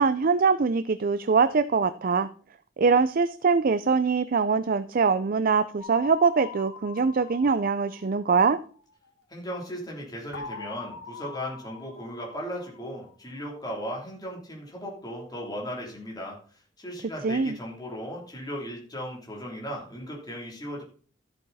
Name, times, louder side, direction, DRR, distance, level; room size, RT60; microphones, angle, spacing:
voice 1, 0.0-2.3 2.8-8.6 17.2-17.6, right 5 dB, 50° right, 13 dB, 0.5 m, -23 dB
sound 1, 5.8-8.7 10.3-13.1, left 5 dB, 75° left, 2.6 m, -43 dB
voice 2, 9.3-20.8, equal, 20° left, -2 dB, 3.3 m, -37 dB
13.0 x 7.9 x 4.2 m, 0.42 s
head